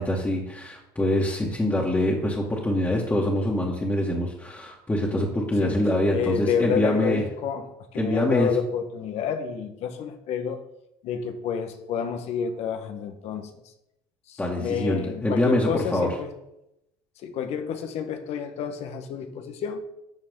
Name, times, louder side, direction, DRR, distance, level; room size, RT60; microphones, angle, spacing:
voice 1, 0.0-7.2 8.0-8.5 14.4-16.1, left 1 dB, 15° left, -5 dB, 2.2 m, -24 dB
voice 2, 6.1-7.7 7.9-10.6 11.0-13.5 14.3-16.3 17.2-19.8, left 7 dB, 60° left, 7 dB, 1.4 m, -29 dB
12.0 x 6.5 x 3.9 m, 0.85 s
hypercardioid pair, 80°, 13 cm